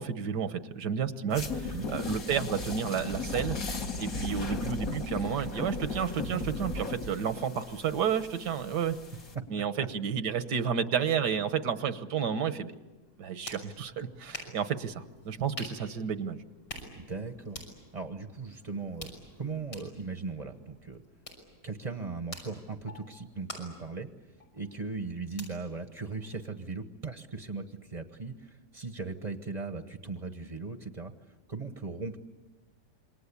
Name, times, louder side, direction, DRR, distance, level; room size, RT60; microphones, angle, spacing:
voice 1, 0.0-3.6 4.0-9.0 9.5-12.7 13.2-16.4, right 7 dB, 75° right, 11 dB, 1.7 m, -31 dB
sound 1, 1.3-9.3, left 3 dB, 55° left, 2.3 m, -36 dB
voice 2, 1.7-2.1 9.3-9.5 9.8-9.9 16.9-17.6 17.9-21.0 21.6-24.1 24.5-31.1 31.5-32.2, right 4 dB, 25° right, 7 dB, 1.0 m, -38 dB
sound 2, 13.0-26.7, left 1 dB, 90° left, 6.8 m, -49 dB
27.5 x 24.0 x 8.5 m, 1.2 s
omnidirectional pair, 1.8 m